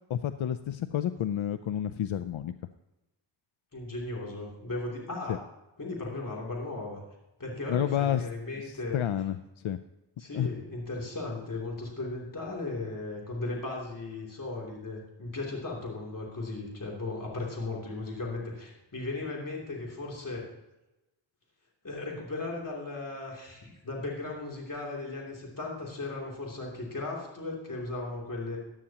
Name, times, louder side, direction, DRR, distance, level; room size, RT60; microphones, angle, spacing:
voice 1, 0.1-2.5 5.3-5.4 7.7-8.3 8.6-9.8 10.3-10.5, left 10 dB, 85° left, 10 dB, 0.5 m, -30 dB
voice 2, 3.7-5.4 5.8-7.0 7.4-9.0 10.2-20.4 21.8-28.6, left 2 dB, 45° left, -2 dB, 2.9 m, -36 dB
14.5 x 9.9 x 2.9 m, 0.98 s
wide cardioid pair, 60°, 47 cm